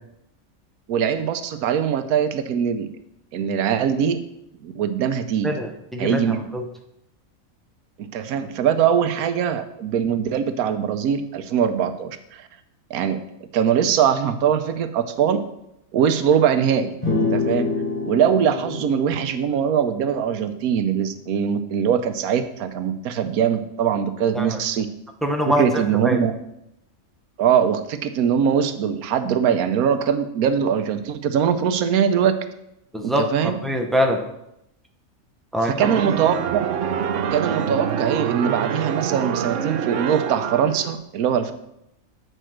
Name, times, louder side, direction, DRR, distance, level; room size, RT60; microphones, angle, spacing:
voice 1, 0.9-2.9 3.3-4.2 4.6-5.5 6.0-6.4 8.0-12.4 12.9-13.2 13.5-15.4 15.9-17.0 17.3-17.7 18.0-24.9 25.5-26.3 27.4-32.4 33.0-33.6 35.7-36.6 37.3-41.5, right 8 dB, 90° right, 9 dB, 1.2 m, -22 dB
voice 2, 5.4-6.2 6.5-6.6 24.3-24.6 25.2-25.6 26.0-26.2 32.9-34.2 35.5-35.7, equal, ahead, 3 dB, 0.4 m, -23 dB
sound 1, 17.0-20.6, left 3 dB, 20° left, 1.7 m, -27 dB
sound 2, 35.8-40.9, right 8 dB, 65° right, 0.9 m, -26 dB
7.9 x 4.4 x 6.3 m, 0.82 s
omnidirectional pair, 1.5 m